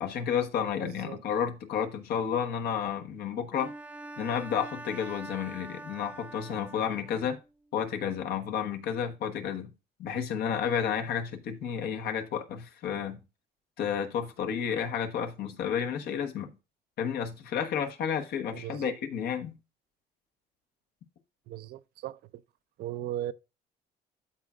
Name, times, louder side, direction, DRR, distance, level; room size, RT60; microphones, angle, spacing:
voice 1, 0.0-3.7 4.2-7.4 7.7-9.7 10.0-13.2 13.8-16.5 17.0-19.6, left 8 dB, 70° left, 1.2 m, -31 dB
voice 2, 0.8-1.2 18.5-19.0 21.5-22.4 22.8-23.3, right 13 dB, 70° right, 0.5 m, -38 dB
Bowed string instrument, 3.6-7.3, right 2 dB, 10° right, 0.4 m, -44 dB
12.5 x 4.3 x 2.4 m
cardioid pair, 110°, 17 cm